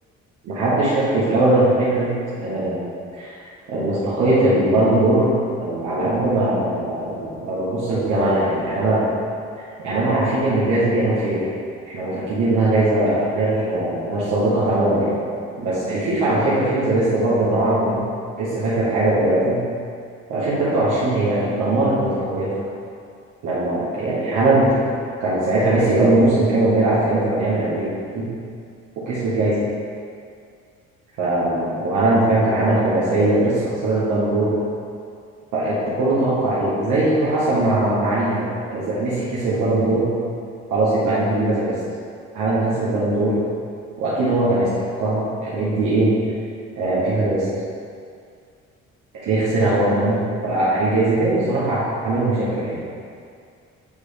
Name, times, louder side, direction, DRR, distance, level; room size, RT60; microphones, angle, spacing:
voice 1, 0.4-2.9 3.2-5.3 5.6-9.1 9.8-11.5 11.8-15.2 15.6-18.0 18.3-19.6 20.3-22.6 23.4-24.9 25.2-28.3 28.9-29.6 31.2-34.5 35.5-40.1 40.7-41.7 42.3-43.4 44.0-46.1 46.7-47.5 49.2-52.8, right 2 dB, 85° right, -9 dB, 1.5 m, -20 dB
8.9 x 3.3 x 3.3 m, 2.3 s
cardioid pair, 90°, 30 cm